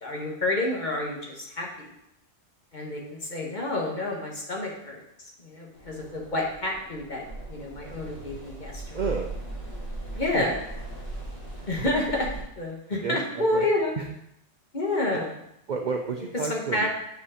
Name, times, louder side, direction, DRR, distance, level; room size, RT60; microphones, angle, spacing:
voice 1, 0.0-1.7 2.7-5.0 5.4-9.0 10.1-10.6 11.7-12.3 12.6-13.9 14.7-15.3 16.5-16.9, left 2 dB, 40° left, -1 dB, 1.5 m, -29 dB
sound 1, 5.7-12.4, right 2 dB, 85° left, 3.9 m, -39 dB
voice 2, 8.9-9.3 10.1-10.4 11.5-11.9 13.0-13.7 14.0-14.1 15.1-15.2 15.7-16.9, right 5 dB, 50° right, 2 dB, 0.5 m, -31 dB
6.6 x 5.2 x 4.9 m, 0.78 s
omnidirectional pair, 1.3 m